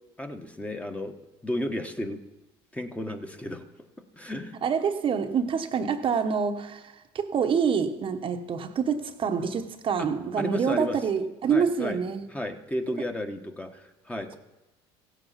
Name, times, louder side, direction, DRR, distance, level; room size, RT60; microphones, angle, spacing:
voice 1, 0.2-1.1 1.4-2.2 2.7-3.7 4.1-4.5 10.0-10.1 10.4-11.0 11.5-12.0 12.3-14.4, left 1 dB, 10° left, 1.4 m, -33 dB
voice 2, 4.6-12.3, right 6 dB, 40° right, 1.1 m, -26 dB
15.5 x 8.1 x 5.8 m
supercardioid pair, 90°, 13 cm